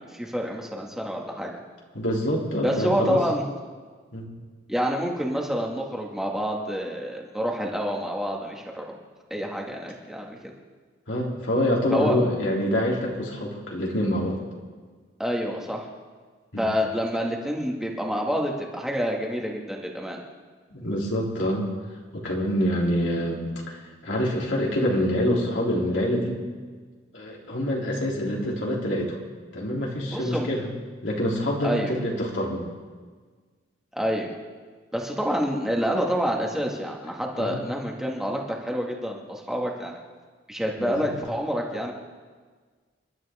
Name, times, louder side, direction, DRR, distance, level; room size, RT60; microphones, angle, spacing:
voice 1, 0.0-1.5 2.6-3.4 4.7-9.0 9.3-10.4 11.9-12.2 15.2-15.9 16.6-20.2 30.1-30.5 31.6-31.9 33.9-34.3 34.9-40.0 40.5-41.9, equal, 5° right, -1 dB, 2.1 m, -28 dB
voice 2, 1.9-3.2 4.1-4.3 11.1-14.4 16.5-16.6 20.7-21.6 22.1-26.4 27.1-29.2 29.5-30.7 31.0-32.7 37.4-37.6 40.8-41.1, equal, 75° left, -3 dB, 3.4 m, -26 dB
29.5 x 12.0 x 3.7 m, 1.5 s
head